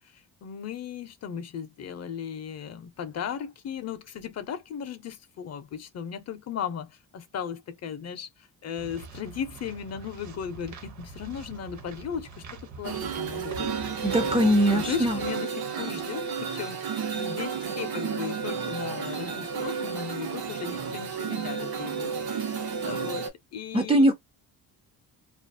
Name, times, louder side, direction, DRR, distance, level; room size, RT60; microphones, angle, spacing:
voice 1, 0.0-13.7 14.2-14.3 14.7-16.8 17.2-24.1, left 8 dB, 45° left, 0.5 m, -37 dB
sound 1, 8.8-15.3, right 4 dB, 55° right, 0.7 m, -44 dB
sound 2, 12.8-23.3, right 6 dB, 85° right, 0.8 m, -32 dB
voice 2, 14.0-15.2 23.7-24.1, right 1 dB, 15° right, 0.3 m, -21 dB
2.4 x 2.3 x 2.5 m
cardioid pair, 150°, 36 cm